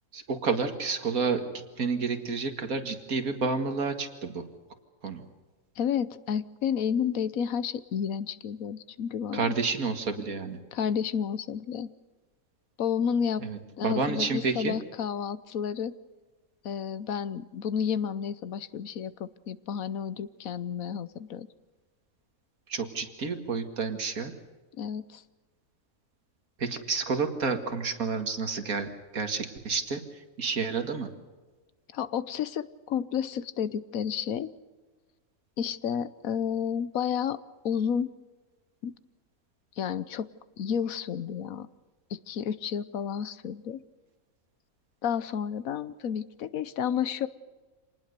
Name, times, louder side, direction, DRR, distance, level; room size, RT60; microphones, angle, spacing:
voice 1, 0.1-1.4 1.8-4.5 5.0-5.2 9.3-10.6 13.4-14.8 22.7-24.3 26.6-30.0 30.4-31.1, right 4 dB, 85° right, 7 dB, 2.4 m, -30 dB
voice 2, 5.8-9.6 10.7-11.9 12.8-13.4 13.8-15.9 16.6-21.5 24.8-25.2 31.9-34.5 35.6-37.4 37.6-38.1 38.8-38.9 39.8-40.3 40.6-41.7 42.1-43.8 45.0-47.3, left 8 dB, 75° left, 16 dB, 1.3 m, -31 dB
27.0 x 19.5 x 6.7 m, 1.3 s
omnidirectional pair, 1.5 m